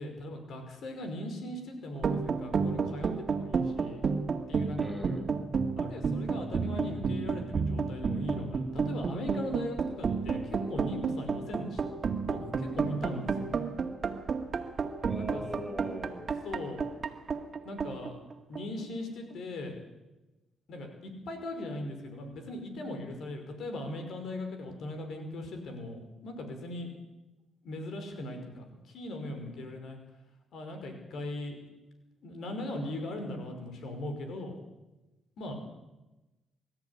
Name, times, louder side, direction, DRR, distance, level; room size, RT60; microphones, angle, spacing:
voice 1, 0.0-4.0 4.5-5.0 5.8-11.9 12.2-13.6 15.1-15.6 16.4-16.9 17.7-18.2 18.5-19.8 20.7-26.9 27.6-28.6 28.9-30.0 30.5-31.6 32.2-34.5 35.4-35.5, left 1 dB, 70° left, 5 dB, 5.3 m, -39 dB
sound 1, 1.9-18.8, right 5 dB, 45° right, 2.0 m, -31 dB
voice 2, 4.8-5.3 15.0-16.2, equal, 5° right, 3 dB, 5.0 m, -40 dB
24.5 x 13.0 x 9.9 m, 1.0 s
cardioid pair, 85°, 0 cm